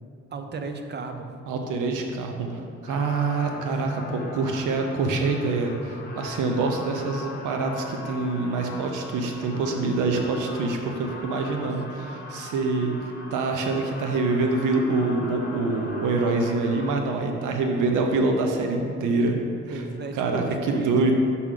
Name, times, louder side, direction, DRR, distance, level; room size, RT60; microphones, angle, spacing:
voice 1, 0.3-1.3 3.6-3.7 11.5-11.7 19.7-21.2, right 3 dB, 35° right, 6 dB, 0.6 m, -35 dB
voice 2, 1.5-12.9 13.3-19.4 19.7-19.8 20.1-21.2, right 3 dB, 85° right, 3 dB, 0.7 m, -25 dB
sound 1, 2.9-17.0, left 3 dB, 30° left, 0.9 m, -41 dB
6.0 x 6.0 x 3.8 m, 2.7 s
cardioid pair, 90°, 30 cm